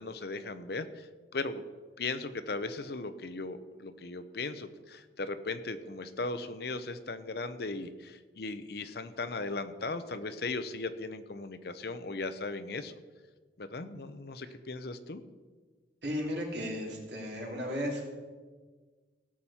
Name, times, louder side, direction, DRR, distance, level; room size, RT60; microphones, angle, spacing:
voice 1, 0.0-1.6 2.0-12.9 13.6-15.2, left 3 dB, 60° left, 11 dB, 0.7 m, -37 dB
voice 2, 16.0-18.1, equal, 70° right, -2 dB, 3.3 m, -35 dB
18.0 x 7.3 x 4.3 m, 1.4 s
head